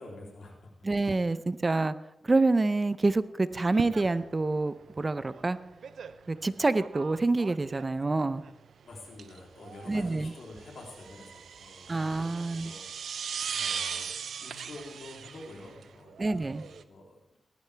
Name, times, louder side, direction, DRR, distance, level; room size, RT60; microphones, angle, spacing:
voice 1, 0.0-0.7 8.8-13.3 13.5-17.2, left 2 dB, 75° left, -1 dB, 3.3 m, -48 dB
voice 2, 0.8-1.9 2.2-5.6 6.3-8.4 9.9-10.3 11.9-12.7 16.2-16.7, right 3 dB, 30° right, 14 dB, 0.7 m, -27 dB
sound 1, 3.5-16.8, right 7 dB, 85° right, 0.6 m, -40 dB
18.0 x 11.5 x 3.4 m, 0.88 s
cardioid pair, 70°, 0 cm